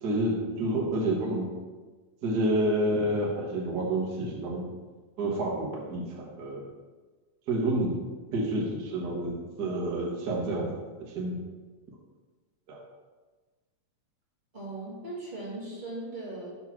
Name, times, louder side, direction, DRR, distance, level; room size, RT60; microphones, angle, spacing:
voice 1, 0.0-1.4 2.2-4.7 5.2-6.6 7.5-7.9 8.3-10.7 11.1-11.4 12.7-12.8, right 1 dB, 80° right, -3 dB, 0.9 m, -29 dB
voice 2, 14.5-16.5, right 2 dB, 50° right, -8 dB, 0.5 m, -38 dB
6.5 x 3.1 x 5.9 m, 1.3 s
omnidirectional pair, 4.0 m